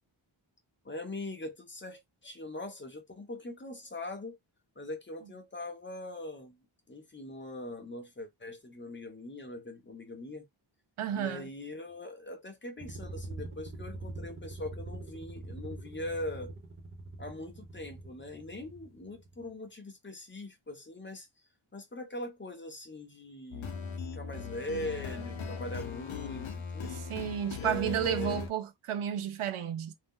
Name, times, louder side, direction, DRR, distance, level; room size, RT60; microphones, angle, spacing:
voice 1, 0.8-4.4 4.8-6.6 6.9-10.5 11.1-16.5 17.2-21.3 21.7-23.8 24.1-27.0 27.6-28.4, left 1 dB, 25° left, 0.6 m, -41 dB
voice 2, 11.0-11.5 26.9-29.9, right 10 dB, 85° right, 0.6 m, -32 dB
sound 1, 12.8-19.5, right 2 dB, 25° right, 0.8 m, -44 dB
sound 2, 23.5-28.5, left 6 dB, 70° left, 0.7 m, -39 dB
2.6 x 2.1 x 3.5 m
wide cardioid pair, 140°, 49 cm